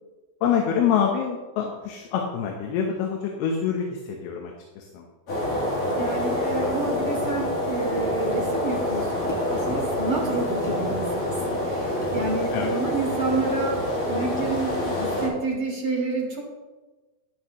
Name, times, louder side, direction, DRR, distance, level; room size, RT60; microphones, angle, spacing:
voice 1, 0.4-5.1 9.7-10.0 12.5-12.7, left 7 dB, 85° left, 1 dB, 3.0 m, -26 dB
sound 1, 5.3-15.3, left 1 dB, 55° left, 4.4 m, -27 dB
voice 2, 5.9-13.8 14.1-16.4, right 3 dB, 20° right, -4 dB, 2.7 m, -29 dB
sound 2, 8.0-8.1 9.3-9.5 10.6-10.8 12.0-12.2, equal, 15° left, 0.7 m, -35 dB
11.5 x 11.0 x 3.1 m, 1.2 s
omnidirectional pair, 4.5 m